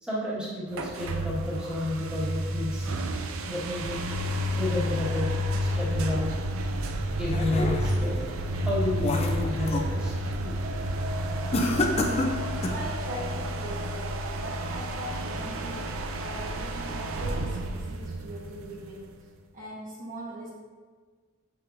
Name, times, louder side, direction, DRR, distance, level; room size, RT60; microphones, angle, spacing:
voice 1, 0.0-3.0 3.5-4.0 4.5-5.3 5.6-6.3 7.2-8.2 8.6-10.1, left 2 dB, 5° right, -8 dB, 1.6 m, -31 dB
sound 1, 0.7-19.2, equal, 80° right, 0.5 m, -30 dB
sound 2, 7.0-8.1 8.6-9.9 10.3-10.7 11.5-12.9, left 2 dB, 30° left, 0.5 m, -29 dB
voice 2, 12.2-15.8 16.2-19.2 19.5-20.5, right 1 dB, 40° right, -6 dB, 1.4 m, -41 dB
7.7 x 5.6 x 2.6 m, 1.5 s
head